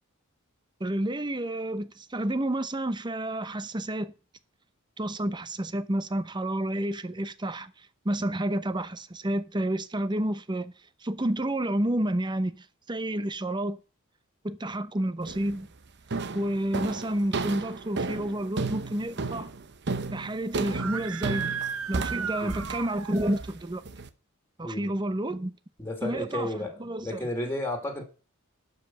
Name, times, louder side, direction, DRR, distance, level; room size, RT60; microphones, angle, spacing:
voice 1, 0.8-4.1 5.0-7.7 8.0-10.7 11.0-13.8 14.4-15.7 16.3-19.5 20.1-21.6 21.9-23.8 24.6-25.5 26.0-26.5 26.8-27.3, right 1 dB, 20° right, 0.8 m, -30 dB
sound 1, 15.3-15.6 16.1-24.1, right 3 dB, 55° right, 0.9 m, -33 dB
Screaming, 20.6-23.4, right 7 dB, 80° right, 1.0 m, -35 dB
voice 2, 25.8-28.0, left 1 dB, 10° left, 2.6 m, -33 dB
12.0 x 5.5 x 7.3 m
head